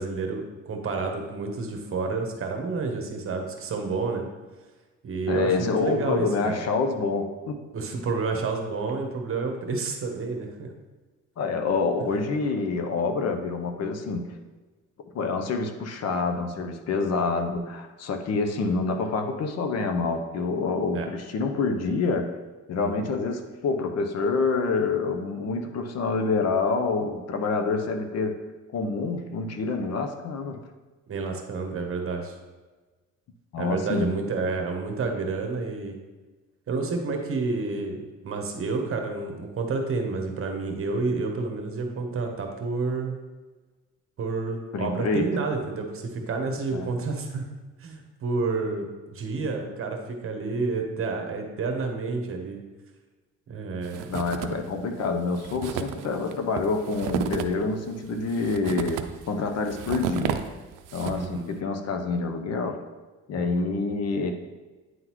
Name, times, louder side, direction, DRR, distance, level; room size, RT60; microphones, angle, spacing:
voice 1, 0.0-4.3 5.0-6.6 7.7-10.7 20.9-21.1 22.8-23.1 31.1-32.4 33.6-36.0 36.7-43.2 44.2-47.4 47.8-52.6 53.5-54.1 61.1-61.5 63.4-63.8, right 4 dB, 45° right, 3 dB, 1.0 m, -30 dB
voice 2, 5.3-7.6 11.4-14.3 15.1-22.3 22.7-28.4 28.7-30.6 33.5-34.2 44.7-45.4 46.7-46.9 54.1-60.4 60.9-62.8 63.3-64.3, left 4 dB, 55° left, 6 dB, 0.7 m, -27 dB
sound 1, 53.8-54.7 55.0-55.1 55.4-61.4, right 9 dB, 85° right, 0.5 m, -33 dB
9.3 x 3.8 x 3.0 m, 1.3 s
cardioid pair, 110°, 31 cm